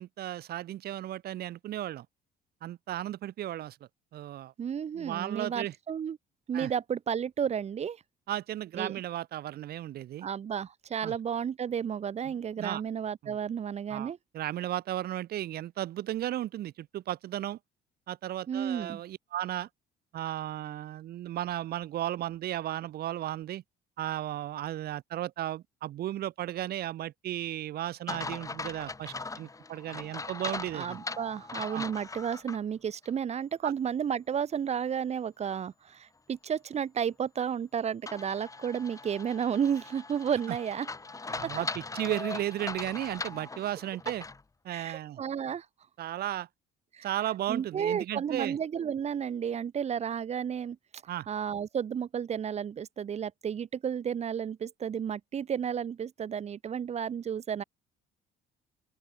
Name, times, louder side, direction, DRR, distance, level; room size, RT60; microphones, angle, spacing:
voice 1, 0.0-2.1 2.6-3.8 4.1-4.5 4.9-5.7 6.5-6.7 8.3-10.3 11.0-11.2 12.6-12.8 13.2-13.4 13.9-17.6 18.1-19.7 20.1-23.6 24.0-31.0 31.7-31.8 33.6-33.7 40.5-40.6 41.3-44.2 44.6-45.2 46.0-46.5 47.0-48.6 51.1-51.3, right 13 dB, 65° right, 4.1 m, -35 dB
voice 2, 4.6-6.2 6.5-8.0 8.7-9.0 10.2-14.2 18.5-19.0 30.7-40.9 41.4-41.5 44.7-45.6 46.9-47.1 47.5-50.8 51.3-57.6, right 8 dB, 40° right, 1.3 m, -32 dB
sound 1, 28.1-32.6 33.0-33.1 38.1-44.4, left 3 dB, 20° left, 6.2 m, -40 dB
open air
cardioid pair, 110°, 17 cm